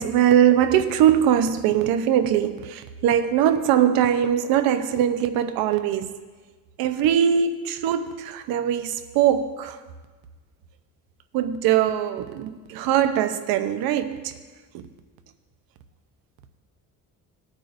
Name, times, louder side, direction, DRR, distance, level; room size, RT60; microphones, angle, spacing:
voice 1, 0.0-6.1 6.8-9.8 11.3-14.3 14.7-14.9, right 10 dB, 80° right, 10 dB, 0.8 m, -21 dB
18.5 x 9.2 x 2.6 m, 1.3 s
cardioid pair, 170°, 35 cm